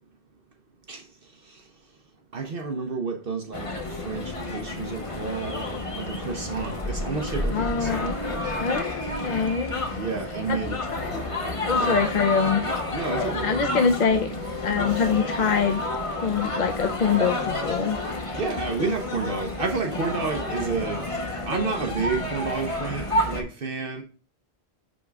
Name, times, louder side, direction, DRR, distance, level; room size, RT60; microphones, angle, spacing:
voice 1, 0.9-1.7 2.3-8.1 9.9-10.8 11.8-12.1 12.9-13.6 18.3-24.0, right 4 dB, 60° right, 1.1 m, -31 dB
sound 1, 3.5-23.4, left 2 dB, 30° left, 1.1 m, -30 dB
sound 2, 4.0-9.2, equal, 15° right, 1.8 m, -36 dB
sound 3, 7.5-8.9 9.2-10.2 10.4-13.4, left 2 dB, 90° left, 1.9 m, -37 dB
voice 2, 7.5-8.1 8.6-9.7 10.5-11.1 11.6-12.7 13.4-14.3 14.6-15.8 16.2-18.0, left 5 dB, 50° left, 0.7 m, -24 dB
10.0 x 3.7 x 3.5 m
omnidirectional pair, 1.1 m